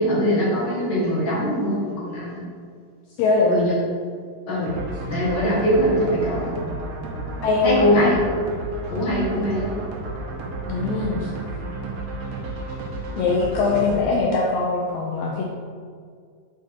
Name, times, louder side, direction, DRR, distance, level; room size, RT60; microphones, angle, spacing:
voice 1, 0.0-2.4 3.5-3.7 4.5-4.8 5.1-6.5 7.6-8.3 8.9-9.7, equal, 45° left, -6 dB, 1.6 m, -22 dB
voice 2, 3.2-3.6 7.4-7.8 10.7-11.3 13.2-15.4, left 3 dB, 85° left, -2 dB, 1.7 m, -21 dB
sound 1, 4.6-14.0, right 2 dB, 70° right, 2.0 m, -32 dB
5.8 x 4.6 x 4.4 m, 2.1 s
omnidirectional pair, 3.8 m